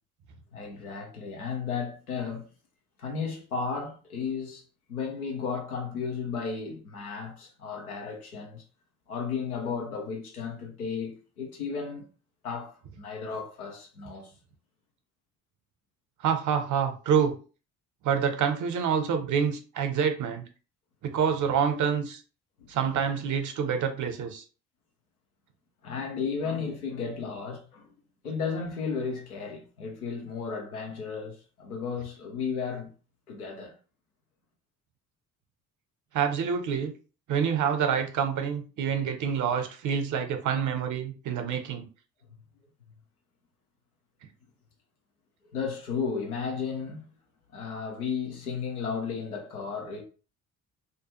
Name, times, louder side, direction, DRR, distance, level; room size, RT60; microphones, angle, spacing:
voice 1, 0.5-2.5 3.0-4.6 4.9-8.6 9.1-12.1 12.4-14.3 22.6-23.0 25.8-27.9 28.2-32.9 33.3-33.7 45.5-47.1 47.5-50.0, left 5 dB, 85° left, 0.7 m, -34 dB
voice 2, 16.2-17.4 18.0-20.4 21.0-22.2 22.7-24.4 36.1-36.9 37.3-41.9, right 7 dB, 45° right, 0.7 m, -27 dB
2.5 x 2.2 x 2.9 m
figure-of-eight pair, 50°, 43 cm